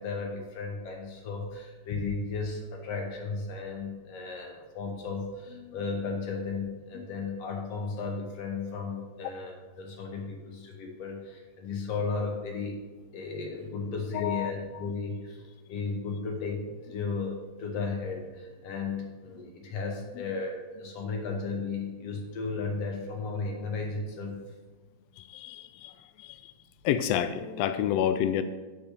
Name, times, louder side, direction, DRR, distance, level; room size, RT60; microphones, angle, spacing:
voice 1, 0.0-12.8 13.1-24.5, left 4 dB, 60° left, 1 dB, 2.6 m, -35 dB
voice 2, 14.1-14.5 25.2-25.9 26.2-26.5 26.8-28.4, left 10 dB, 85° left, 11 dB, 1.4 m, -29 dB
10.0 x 5.1 x 6.6 m, 1.3 s
omnidirectional pair, 3.4 m